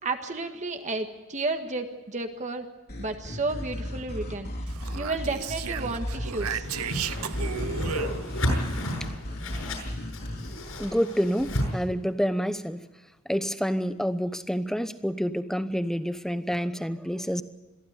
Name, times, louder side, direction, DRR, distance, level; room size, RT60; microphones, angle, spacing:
voice 1, 0.0-2.7 3.0-4.5 4.9-6.7, right 3 dB, 35° right, 5 dB, 1.6 m, -32 dB
sound 1, 2.9-10.5, equal, 45° left, 3.5 m, -35 dB
Speech, 4.7-8.6, right 8 dB, 85° right, 0.6 m, -35 dB
Whoosh swoosh swish, 6.6-11.7, left 1 dB, 70° left, 7.2 m, -31 dB
voice 2, 10.8-12.8 13.3-17.4, equal, ahead, 11 dB, 0.9 m, -28 dB
22.5 x 15.0 x 8.2 m, 1.2 s
head